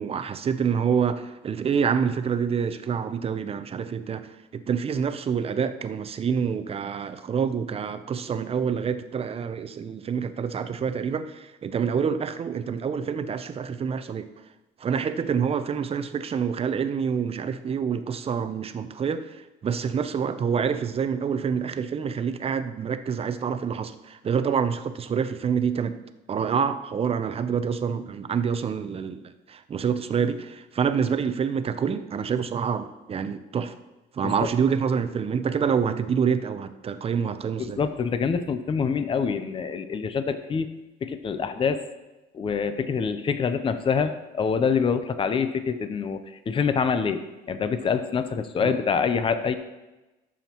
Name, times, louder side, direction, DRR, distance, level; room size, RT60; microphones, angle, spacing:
voice 1, 0.0-14.3 14.8-26.0 26.3-33.7 34.1-37.8 48.6-48.8, right 6 dB, 35° right, 10 dB, 0.6 m, -27 dB
voice 2, 37.6-40.7 41.0-41.9 42.3-47.2 47.5-49.5, left 6 dB, 30° left, 10 dB, 0.7 m, -26 dB
13.0 x 7.2 x 3.0 m, 1.1 s
cardioid pair, 110°, 17 cm